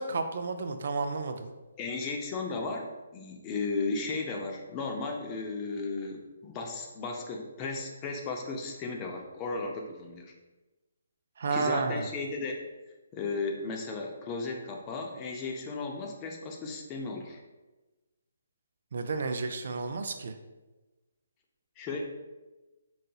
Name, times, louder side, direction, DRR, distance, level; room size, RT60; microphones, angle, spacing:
voice 1, 0.0-1.5 11.4-12.1 18.9-20.3, right 4 dB, 60° right, 7 dB, 0.3 m, -31 dB
voice 2, 1.8-2.9 3.1-10.3 11.5-12.6 13.1-17.4 21.8-22.0, left 3 dB, 25° left, 2 dB, 0.4 m, -35 dB
3.9 x 2.7 x 2.2 m, 1.1 s
hypercardioid pair, 155°, 0 cm